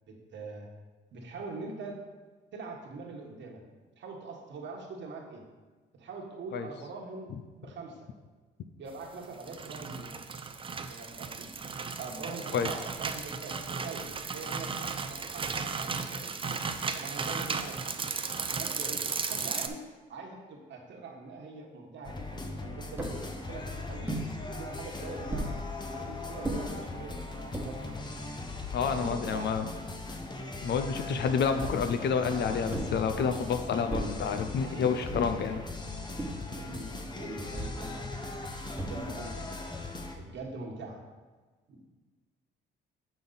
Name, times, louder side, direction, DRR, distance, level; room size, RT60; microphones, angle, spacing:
voice 1, 0.1-0.7 1.1-2.0 2.5-3.6 4.0-5.4 5.9-7.3 7.6-8.1 8.8-10.1 10.9-11.5 12.0-16.3 16.9-17.8 18.6-19.8 20.1-24.1 24.5-25.5 25.9-28.1 28.8-29.7 31.1-31.6 34.6-35.1 36.3-38.3 38.9-39.6 40.2-41.0 41.7-41.9, right 3 dB, 65° right, 1 dB, 1.3 m, -43 dB
sound 1, 9.2-19.7, right 5 dB, 25° right, 0.5 m, -35 dB
sound 2, 22.0-40.2, left 3 dB, 20° left, 0.9 m, -39 dB
sound 3, 23.0-23.2 24.1-24.3 25.3-25.6 26.4-26.6 27.3-27.7 28.4-28.5 28.8-29.8 31.6-32.0 32.7-33.0 33.9-34.2 35.1-35.4 36.2-36.5 37.5-37.8 38.8-39.2, right 1 dB, 10° right, 1.3 m, -36 dB
voice 2, 28.7-29.7 30.6-35.6, left 6 dB, 60° left, 9 dB, 0.5 m, -29 dB
6.9 x 5.4 x 4.0 m, 1.3 s
cardioid pair, 90°, 20 cm